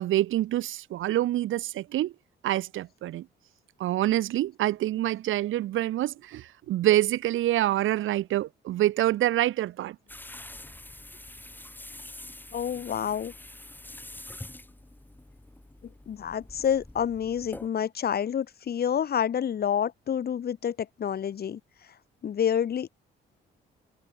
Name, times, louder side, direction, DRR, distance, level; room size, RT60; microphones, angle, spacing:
voice 1, 0.0-2.1 2.4-3.3 3.8-10.0, right 14 dB, 80° right, 2.7 m, -26 dB
sound 1, 10.1-17.7, left 1 dB, 10° left, 4.0 m, -45 dB
voice 2, 12.5-13.3 16.1-21.6 22.2-22.9, left 8 dB, 50° left, 1.5 m, -28 dB
cardioid pair, 90°, 20 cm